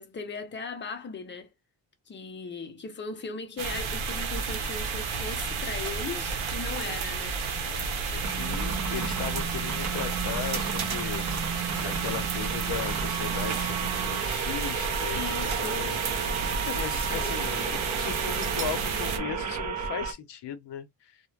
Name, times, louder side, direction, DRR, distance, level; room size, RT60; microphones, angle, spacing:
voice 1, 0.0-1.5 2.1-7.4 15.1-16.0 17.1-17.4, left 4 dB, 25° left, 0.5 m, -38 dB
sound 1, 3.6-19.2, right 5 dB, 85° right, 0.8 m, -31 dB
voice 2, 7.6-16.0 16.2-21.2, left 8 dB, 65° left, 0.7 m, -38 dB
sound 2, 8.2-20.1, right 5 dB, 40° right, 0.6 m, -33 dB
2.4 x 2.1 x 3.1 m
wide cardioid pair, 160°, 46 cm